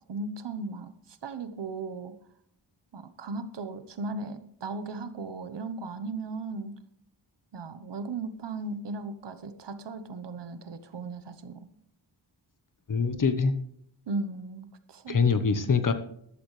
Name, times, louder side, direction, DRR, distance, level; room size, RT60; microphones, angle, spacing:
voice 1, 0.1-2.1 2.9-6.7 7.5-11.7 14.1-15.3, right 3 dB, 60° right, 11 dB, 1.1 m, -37 dB
voice 2, 12.9-13.5 15.1-15.9, left 5 dB, 40° left, 10 dB, 1.1 m, -24 dB
14.0 x 12.0 x 3.3 m, 0.70 s
wide cardioid pair, 110°, 47 cm